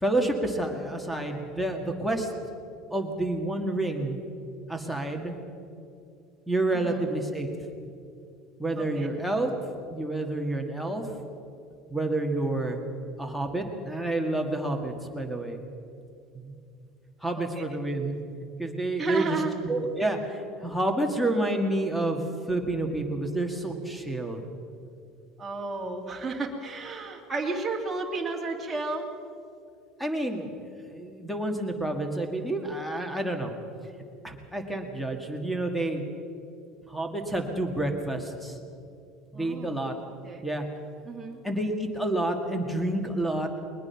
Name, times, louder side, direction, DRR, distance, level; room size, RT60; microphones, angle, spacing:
voice 1, 0.0-2.3 2.9-4.2 4.7-5.3 6.5-7.5 8.6-9.5 9.9-11.1 11.9-12.8 13.2-15.6 16.3-16.5 17.2-18.1 18.6-19.4 19.6-22.2 22.5-24.4 30.0-33.5 34.2-36.0 36.9-38.6 39.3-39.9 40.4-40.6 41.4-43.5, right 1 dB, ahead, 4 dB, 2.1 m, -29 dB
voice 2, 6.7-7.0 8.8-9.1 17.3-17.6 19.0-19.5 25.4-29.1 39.3-39.8 40.2-40.5 41.0-41.4, right 3 dB, 15° right, 0 dB, 2.6 m, -33 dB
22.0 x 20.0 x 5.9 m, 2.5 s
cardioid pair, 150°, 0 cm